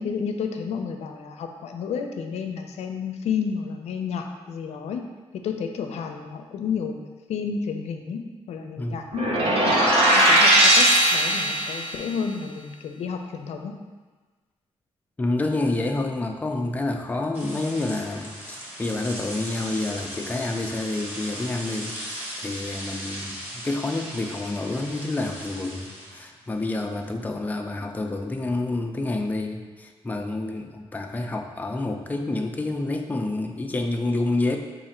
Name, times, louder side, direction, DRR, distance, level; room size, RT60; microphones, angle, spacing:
voice 1, 0.0-5.0 5.4-7.0 7.3-8.2 8.5-13.7, left 6 dB, 90° left, 5 dB, 0.4 m, -31 dB
sound 1, 9.1-11.9, right 1 dB, 65° right, 0.8 m, -18 dB
voice 2, 15.2-21.9 22.4-34.6, left 2 dB, 15° left, 3 dB, 0.4 m, -28 dB
sound 2, 17.3-27.1, equal, 20° right, 1.0 m, -38 dB
4.8 x 2.5 x 4.2 m, 1.3 s
cardioid pair, 120°, 11 cm